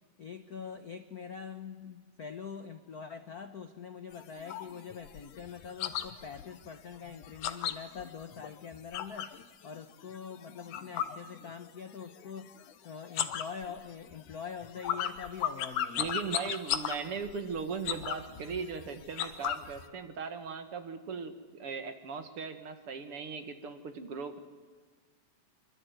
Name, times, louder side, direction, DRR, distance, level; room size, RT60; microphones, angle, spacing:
voice 1, 0.2-9.4 9.6-12.5 12.8-16.1, left 6 dB, 70° left, 9 dB, 0.8 m, -44 dB
sound 1, 4.1-9.4 9.8-11.9 12.2-12.7 13.0-19.9, left 10 dB, 85° left, 2.7 m, -36 dB
voice 2, 16.0-24.4, right 5 dB, 50° right, 9 dB, 2.4 m, -38 dB
25.5 x 24.5 x 9.3 m, 1.4 s
omnidirectional pair, 3.4 m